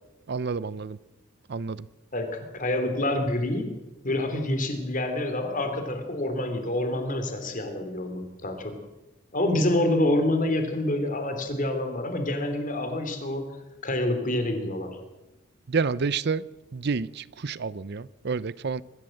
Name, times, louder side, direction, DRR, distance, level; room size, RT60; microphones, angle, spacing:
voice 1, 0.3-1.0 1.5-1.9 15.7-16.5 16.7-18.8, right 5 dB, 55° right, 0.6 m, -29 dB
voice 2, 2.1-3.7 4.0-8.7 9.3-13.5 13.8-14.9, left 1 dB, 40° left, 3.2 m, -27 dB
23.0 x 14.5 x 7.9 m
head